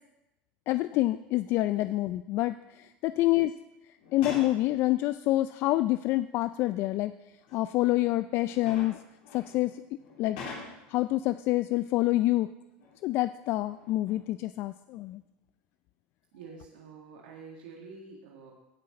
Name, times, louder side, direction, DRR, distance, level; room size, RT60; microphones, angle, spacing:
voice 1, 0.7-3.5 4.1-7.1 7.5-9.0 9.3-9.8 10.2-10.4 10.9-12.5 13.0-15.2, left 16 dB, 50° left, 13 dB, 0.3 m, -27 dB
sound 1, 4.0-4.7 5.8-5.9 7.2-11.0 12.8-13.3 13.6-14.4 14.9-15.1, left 4 dB, 75° left, 3.5 m, -45 dB
voice 2, 16.3-18.5, right 5 dB, 85° right, -1 dB, 1.9 m, -48 dB
16.5 x 6.3 x 4.2 m, 0.93 s
supercardioid pair, 115°, 5 cm